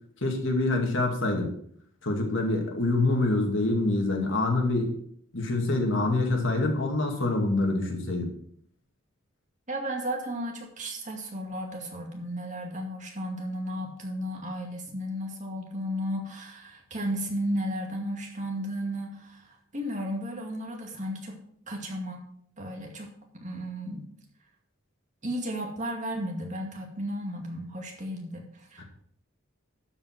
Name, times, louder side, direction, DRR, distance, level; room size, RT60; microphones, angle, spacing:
voice 1, 0.2-1.5 2.0-5.0 5.3-8.3 28.8-28.9, left 2 dB, 65° left, 2 dB, 2.3 m, -26 dB
voice 2, 9.7-21.4 21.7-22.2 22.6-23.1 23.4-24.0 25.2-28.8, equal, 40° right, 1 dB, 2.3 m, -34 dB
12.0 x 5.5 x 6.0 m, 0.65 s
head